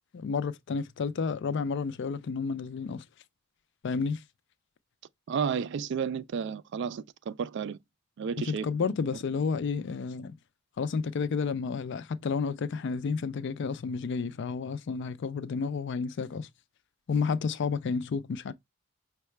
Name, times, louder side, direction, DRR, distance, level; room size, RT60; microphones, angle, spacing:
voice 1, 0.1-3.0 3.8-4.2 8.4-10.4 10.8-16.5 17.1-18.5, left 5 dB, 55° left, 0.4 m, -31 dB
voice 2, 5.3-7.8 8.2-8.9, right 6 dB, 55° right, 0.3 m, -32 dB
5.5 x 2.2 x 3.1 m
head